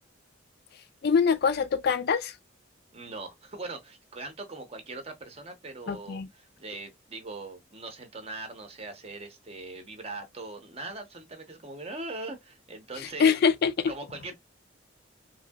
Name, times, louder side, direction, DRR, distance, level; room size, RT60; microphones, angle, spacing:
voice 1, 1.0-2.3 5.9-6.3 13.2-13.9, left 6 dB, 50° left, 0.3 m, -24 dB
voice 2, 2.9-13.4 13.9-14.4, right 2 dB, 30° right, 0.7 m, -41 dB
3.2 x 2.7 x 2.2 m
head